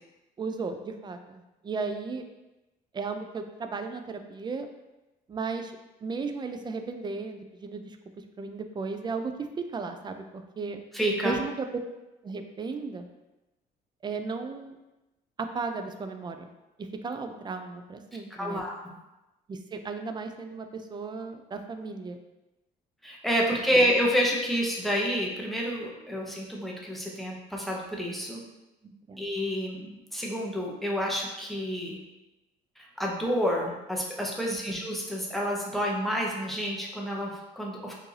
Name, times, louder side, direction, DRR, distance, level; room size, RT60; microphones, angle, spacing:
voice 1, 0.4-2.3 2.9-4.7 5.3-8.0 8.4-10.8 11.2-11.7 12.2-13.1 14.0-14.8 15.4-16.5 16.8-18.6 19.5-22.2 23.7-23.9 28.8-29.2 34.5-34.8, right 4 dB, 25° right, 7 dB, 0.4 m, -35 dB
voice 2, 10.9-11.4 18.4-18.8 23.0-28.4 29.2-32.0 32.8-38.0, equal, ahead, -2 dB, 0.8 m, -29 dB
4.6 x 2.6 x 3.2 m, 1.0 s
cardioid pair, 110°, 17 cm